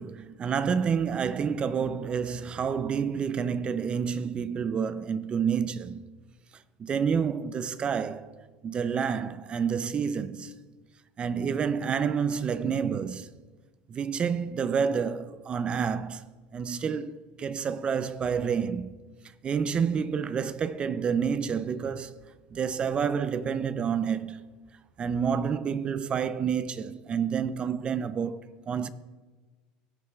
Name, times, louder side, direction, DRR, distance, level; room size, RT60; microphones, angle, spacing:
voice 1, 0.0-6.0 6.8-8.3 8.6-10.5 11.2-13.3 13.9-16.3 16.5-19.0 19.4-22.2 22.5-24.4 25.0-28.9, right 6 dB, 30° right, 0.4 m, -29 dB
16.5 x 9.4 x 2.4 m
supercardioid pair, 120°, 4 cm